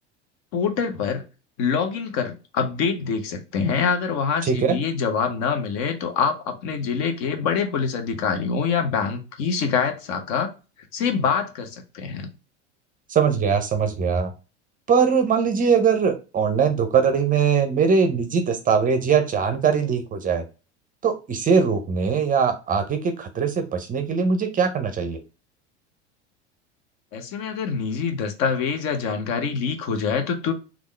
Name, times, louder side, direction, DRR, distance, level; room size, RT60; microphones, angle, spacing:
voice 1, 0.5-1.2 1.6-10.5 10.9-12.3 27.1-30.5, left 6 dB, 50° left, 5 dB, 0.9 m, -25 dB
voice 2, 4.4-4.8 13.1-14.3 14.9-20.4 21.0-25.2, right 6 dB, 25° right, 7 dB, 0.5 m, -21 dB
3.5 x 2.4 x 3.1 m, 0.31 s
hypercardioid pair, 80°, 34 cm